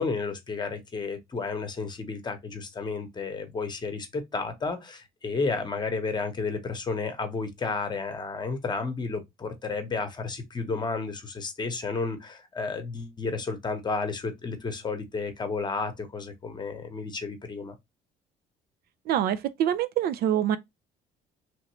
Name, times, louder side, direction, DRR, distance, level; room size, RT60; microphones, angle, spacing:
voice 1, 0.0-17.7, left 4 dB, 25° left, 0.9 m, -32 dB
voice 2, 19.1-20.6, right 10 dB, 65° right, 0.4 m, -25 dB
3.1 x 2.5 x 3.0 m
cardioid pair, 110°, 17 cm